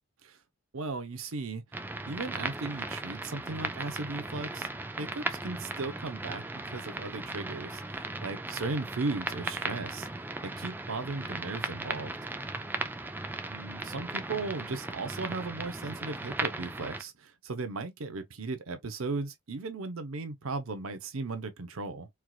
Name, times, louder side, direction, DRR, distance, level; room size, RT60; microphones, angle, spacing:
voice 1, 0.7-1.6 2.1-4.7 5.0-10.1 10.4-12.1 13.5-22.1, right 3 dB, 90° right, 0.8 m, -36 dB
sound 1, 1.7-17.0, right 2 dB, 10° right, 0.4 m, -37 dB
4.6 x 2.4 x 2.3 m
head